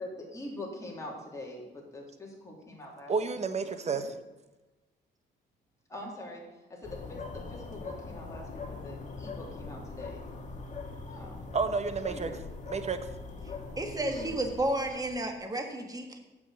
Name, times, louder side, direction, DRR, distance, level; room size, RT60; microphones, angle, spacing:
voice 1, 0.0-3.1 3.8-4.1 5.9-6.4 6.7-10.2 11.1-11.4 12.1-12.3 13.5-13.6 13.9-14.3, left 1 dB, 15° left, -3 dB, 3.1 m, -43 dB
voice 2, 3.1-4.1 11.5-12.3 12.7-13.0, right 5 dB, 35° right, 10 dB, 0.9 m, -30 dB
sound 1, 6.8-15.4, left 3 dB, 40° left, 1.6 m, -42 dB
voice 3, 13.8-16.2, right 1 dB, 20° right, 4 dB, 1.6 m, -32 dB
7.6 x 6.1 x 7.8 m, 1.1 s
cardioid pair, 90°, 20 cm